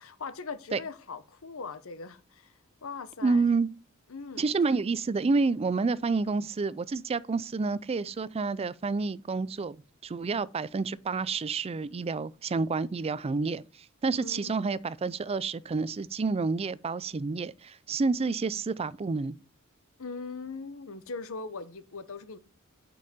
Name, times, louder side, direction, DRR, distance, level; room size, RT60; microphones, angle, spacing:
voice 1, 0.0-2.5 2.8-3.5 4.1-4.5 14.1-14.6 20.0-22.4, left 4 dB, 70° left, 0.8 m, -40 dB
voice 2, 3.2-3.7 4.4-9.8 10.0-13.6 14.0-19.3, right 4 dB, 30° right, 0.4 m, -29 dB
6.4 x 5.4 x 4.2 m
head